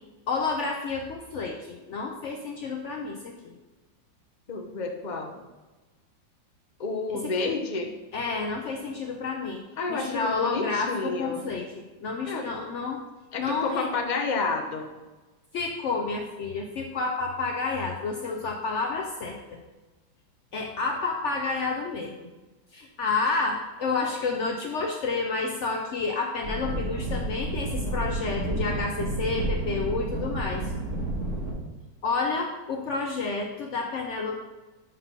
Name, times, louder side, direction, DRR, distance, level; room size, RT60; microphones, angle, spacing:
voice 1, 0.3-3.5 7.1-7.3 8.1-9.6 9.9-13.0 13.4-13.9 15.5-19.6 20.5-22.3 22.7-30.6 32.0-34.4, left 4 dB, 80° left, 1 dB, 0.6 m, -30 dB
voice 2, 4.5-5.4 6.8-7.9 9.8-11.5 12.3-12.5 13.3-14.9, left 3 dB, 40° left, 2 dB, 0.6 m, -30 dB
sound 1, 26.4-31.5, right 1 dB, 45° right, 1.7 m, -30 dB
5.8 x 5.7 x 5.4 m, 1.2 s
omnidirectional pair, 2.1 m